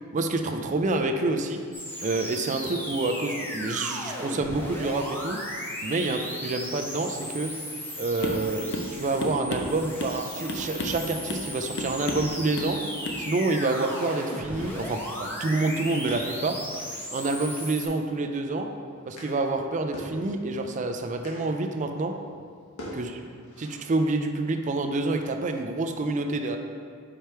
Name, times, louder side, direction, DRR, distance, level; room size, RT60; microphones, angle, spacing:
voice 1, 0.1-1.6 2.0-5.4 5.8-7.5 8.0-12.8 13.2-16.6 17.1-18.7 19.1-22.1 22.9-23.2 23.6-26.6, right 2 dB, 35° right, 5 dB, 0.4 m, -28 dB
sound 1, 1.7-17.9, left 1 dB, 10° left, 0.8 m, -36 dB
sound 2, 8.2-8.5 8.7-8.9 9.2-10.2 10.5-11.0 11.3-11.5 11.8-12.3 12.6-12.8 13.0-13.2, left 1 dB, 55° left, 0.6 m, -32 dB
sound 3, 16.0-25.9, equal, 85° left, 1.3 m, -47 dB
5.1 x 4.6 x 4.4 m, 2.1 s
head